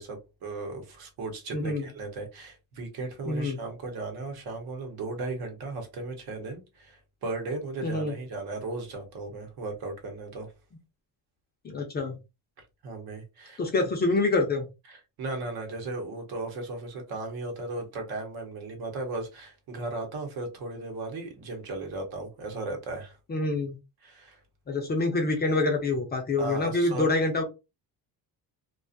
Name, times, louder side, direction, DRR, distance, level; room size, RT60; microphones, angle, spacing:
voice 1, 0.0-10.5 12.8-13.6 14.9-23.2 24.0-24.4 26.4-27.2, right 2 dB, 65° right, 0.9 m, -36 dB
voice 2, 1.5-1.9 3.3-3.6 7.8-8.2 11.6-12.2 13.6-14.7 23.3-23.8 24.7-27.4, left 2 dB, 25° left, 0.5 m, -26 dB
2.4 x 2.3 x 2.5 m
cardioid pair, 150°, 39 cm